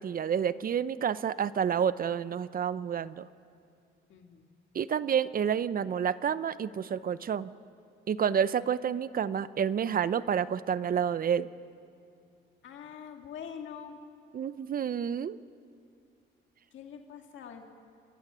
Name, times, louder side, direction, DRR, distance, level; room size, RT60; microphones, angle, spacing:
voice 1, 0.0-3.3 4.7-7.5 8.1-11.5 14.3-15.4, right 8 dB, 45° right, 16 dB, 0.7 m, -29 dB
voice 2, 4.1-4.4 12.6-14.0 16.7-17.6, left 8 dB, 70° left, 3 dB, 2.0 m, -44 dB
30.0 x 12.5 x 9.6 m, 2.4 s
cardioid pair, 90°, 20 cm